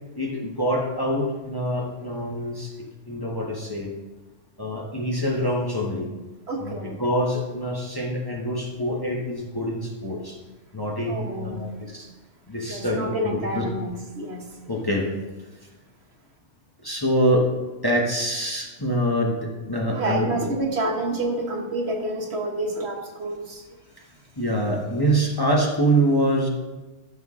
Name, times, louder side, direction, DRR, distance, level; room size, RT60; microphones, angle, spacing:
voice 1, 0.1-3.9 4.6-6.1 6.6-10.4 10.7-12.1 12.5-13.6 14.6-15.1 16.8-17.5 17.8-20.3 24.4-26.5, right 1 dB, 20° left, -2 dB, 1.1 m, -25 dB
voice 2, 6.5-7.0 11.1-11.8 12.7-14.4 19.9-23.6, right 1 dB, 55° right, 2 dB, 1.4 m, -28 dB
13.5 x 6.4 x 3.7 m, 1.2 s
omnidirectional pair, 1.3 m